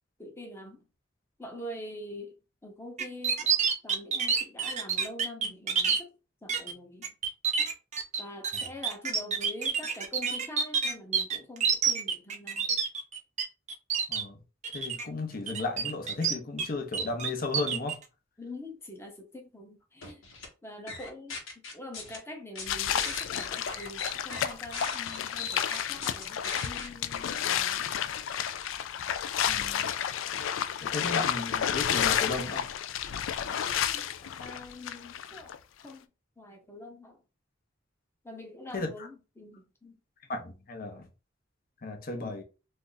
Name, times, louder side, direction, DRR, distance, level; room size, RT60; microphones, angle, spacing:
voice 1, 0.2-0.9 1.4-2.4 2.6-6.2 6.4-7.1 8.2-12.8 18.4-20.2 20.6-21.4 21.7-27.9 33.6-34.1 34.4-35.5 35.8-36.1 36.4-37.2 38.2-40.0 42.2-42.4, left 1 dB, 15° left, 0.8 m, -45 dB
sound 1, 3.0-6.0 6.5-6.7 7.0-13.4 13.7-14.2 14.6-15.0 15.5-16.7 16.9-17.9, right 6 dB, 35° right, 0.5 m, -28 dB
voice 2, 14.7-18.0 29.4-29.9 30.8-32.7 38.7-38.9 40.3-41.1 41.8-42.4, left 3 dB, 45° left, 0.7 m, -34 dB
sound 2, 20.0-20.5 20.9-22.2 22.6-26.9, left 4 dB, 85° left, 1.2 m, -39 dB
sound 3, 22.7-35.6, left 9 dB, 70° left, 0.3 m, -31 dB
2.6 x 2.5 x 3.8 m
head